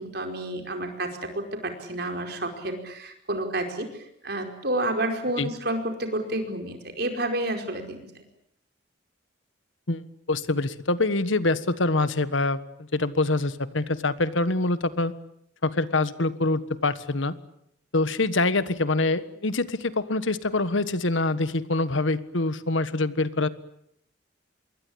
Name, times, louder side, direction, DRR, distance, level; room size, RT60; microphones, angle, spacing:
voice 1, 0.0-3.9 4.2-8.1, right 1 dB, 55° right, 5 dB, 4.9 m, -30 dB
voice 2, 9.9-12.6 12.9-15.1 15.6-17.3 17.9-23.5, left 2 dB, 80° left, 14 dB, 1.5 m, -25 dB
27.0 x 22.5 x 8.7 m, 0.72 s
head